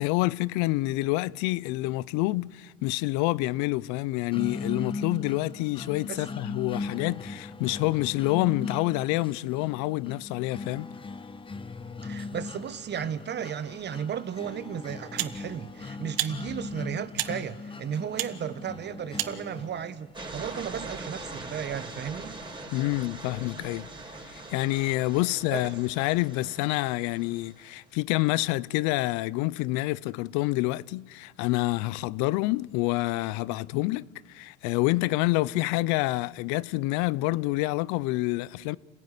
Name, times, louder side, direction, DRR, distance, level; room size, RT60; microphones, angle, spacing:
voice 1, 0.0-10.9 22.7-23.9 24.2-38.8, left 19 dB, 70° left, 0.7 m, -27 dB
sound 1, 4.3-20.3, left 4 dB, 15° left, 1.3 m, -39 dB
voice 2, 12.0-22.4 25.5-25.8, right 8 dB, 35° right, 1.2 m, -34 dB
sound 2, 14.2-14.4 15.2-15.4 16.1-16.3 17.1-17.3 18.2-18.3 19.1-19.4, right 16 dB, 80° right, 1.6 m, -30 dB
sound 3, 20.1-27.8, right 2 dB, 15° right, 5.1 m, -42 dB
29.0 x 16.0 x 9.9 m
supercardioid pair, 110°, 30 cm